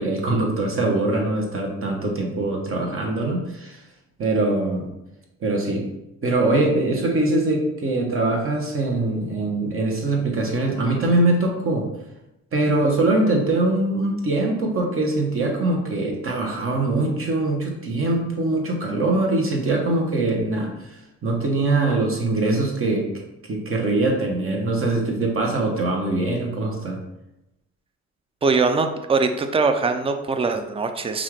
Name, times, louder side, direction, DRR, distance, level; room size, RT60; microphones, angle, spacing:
voice 1, 0.0-3.8 4.2-4.9 5.4-5.9 6.2-11.9 12.5-23.1 23.5-27.0, right 2 dB, 45° right, 1 dB, 1.0 m, -22 dB
voice 2, 28.4-31.2, right 4 dB, 20° right, 8 dB, 0.4 m, -22 dB
5.3 x 2.5 x 3.2 m, 0.91 s
cardioid pair, 90°, 30 cm